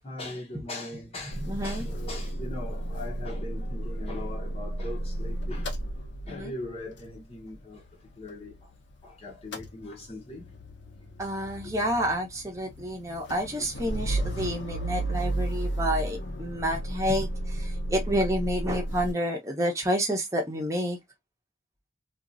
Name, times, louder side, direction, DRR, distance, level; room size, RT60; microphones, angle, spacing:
voice 1, 0.0-5.7 6.3-8.7 9.0-10.5, left 2 dB, 30° left, 0.9 m, -40 dB
Motor vehicle (road) / Engine starting / Idling, 1.3-9.0 9.3-19.1, right 1 dB, 80° left, 0.8 m, -33 dB
voice 2, 1.4-1.9 6.3-6.5 11.2-21.0, equal, 15° right, 0.9 m, -29 dB
2.9 x 2.5 x 2.5 m
head